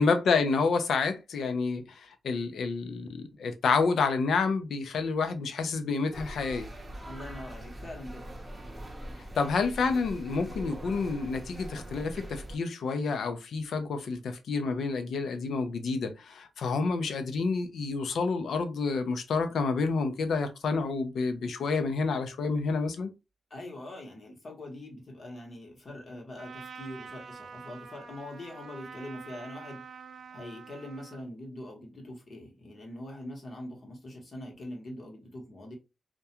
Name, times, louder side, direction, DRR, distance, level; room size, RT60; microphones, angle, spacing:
voice 1, 0.0-6.7 9.4-23.1, left 4 dB, 80° left, 0.5 m, -29 dB
sound 1, 6.1-12.6, right 1 dB, 20° right, 0.7 m, -42 dB
voice 2, 7.0-8.3 23.5-30.0 30.3-35.8, left 1 dB, 45° left, 1.0 m, -43 dB
Trumpet, 26.3-31.3, right 6 dB, 65° right, 0.4 m, -46 dB
2.3 x 2.2 x 2.8 m
wide cardioid pair, 115°, 0 cm